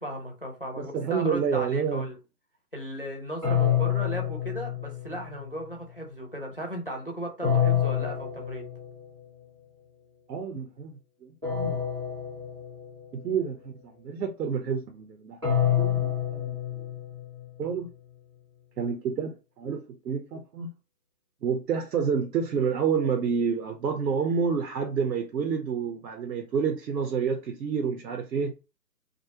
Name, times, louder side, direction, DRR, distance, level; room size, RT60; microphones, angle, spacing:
voice 1, 0.0-2.2 2.7-8.7, equal, 35° left, 0.4 m, -36 dB
voice 2, 0.8-2.1 3.6-3.8 10.3-10.9 11.2-11.8 13.1-16.9 17.6-17.9 18.8-20.7 21.4-28.5, right 6 dB, 75° right, 0.7 m, -29 dB
sound 1, 3.4-5.5 7.4-9.3 11.4-13.3 15.4-17.6, left 9 dB, 15° right, 0.7 m, -28 dB
2.5 x 2.1 x 2.8 m
hypercardioid pair, 155°, 50 cm